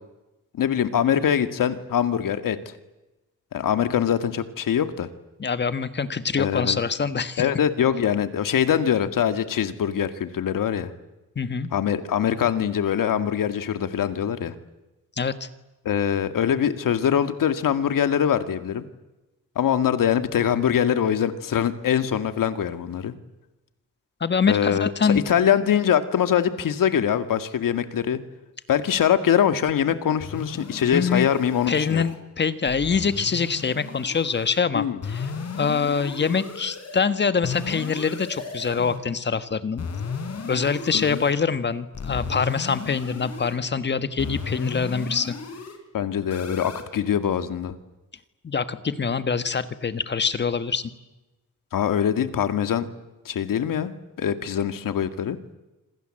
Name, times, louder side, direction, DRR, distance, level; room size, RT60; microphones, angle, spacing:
voice 1, 0.5-2.6 3.5-5.1 6.4-6.8 7.4-10.9 11.7-14.6 15.9-18.8 19.6-23.1 24.5-28.2 28.7-32.0 34.7-35.0 40.9-41.2 45.9-47.7 51.7-52.9 53.3-55.4, left 9 dB, 80° left, 10 dB, 2.1 m, -23 dB
voice 2, 5.4-7.4 11.3-11.7 15.2-15.5 24.2-25.2 30.9-31.3 31.7-35.3 35.6-39.8 40.5-45.3 48.4-50.9, left 5 dB, 35° left, 12 dB, 1.5 m, -24 dB
sound 1, 30.2-32.2 32.7-34.6 35.0-37.0 37.4-39.0 39.8-41.3 41.9-43.6 44.2-45.8 46.3-46.8, left 5 dB, 50° left, 4.4 m, -35 dB
28.0 x 26.5 x 7.8 m, 1.0 s
wide cardioid pair, 165°, 33 cm